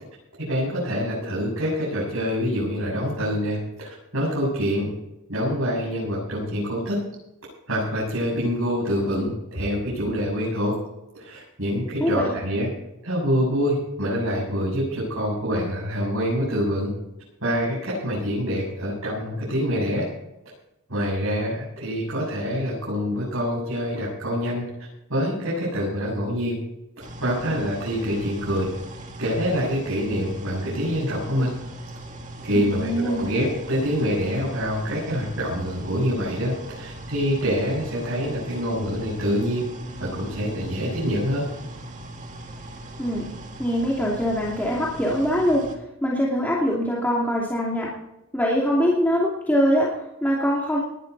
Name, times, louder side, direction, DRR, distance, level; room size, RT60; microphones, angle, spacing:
voice 1, 0.5-4.9 5.3-7.0 7.7-10.8 11.1-12.7 13.0-16.9 17.4-20.0 20.9-24.6 25.1-26.6 27.2-28.7 29.2-31.5 32.4-39.7 40.0-41.5, equal, 70° right, -7 dB, 7.8 m, -26 dB
voice 2, 12.0-12.3 32.5-33.3 43.0-43.3 43.6-45.6 46.0-47.9 48.3-50.8, equal, 10° left, -5 dB, 2.8 m, -23 dB
sound 1, 27.0-45.8, right 1 dB, 35° right, 2.3 m, -39 dB
19.5 x 13.0 x 4.2 m, 0.91 s
head